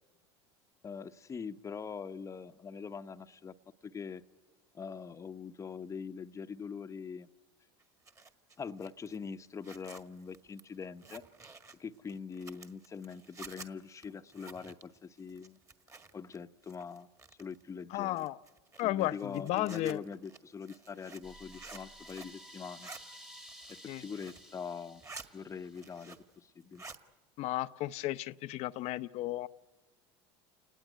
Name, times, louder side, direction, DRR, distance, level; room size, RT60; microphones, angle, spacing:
voice 1, 0.8-3.5 3.8-4.2 4.7-7.3 8.6-11.3 11.8-15.6 16.1-17.1 17.4-18.3 18.8-22.9 23.7-25.0 25.3-26.8, left 6 dB, 25° left, 9 dB, 0.8 m, -43 dB
Zipper (clothing), 7.8-16.4 16.6-17.6 18.1-22.4 22.6-23.0 23.5-24.5 24.8-25.3 25.6-26.4 26.6-27.0, right 4 dB, 25° right, 1.8 m, -52 dB
voice 2, 17.9-18.4 18.8-20.0 23.9-24.0 27.4-29.5, left 16 dB, 55° left, 14 dB, 0.7 m, -34 dB
sound 1, 21.2-26.1, equal, 5° right, 1.3 m, -53 dB
28.5 x 19.5 x 9.3 m, 1.3 s
supercardioid pair, 95°, 13 cm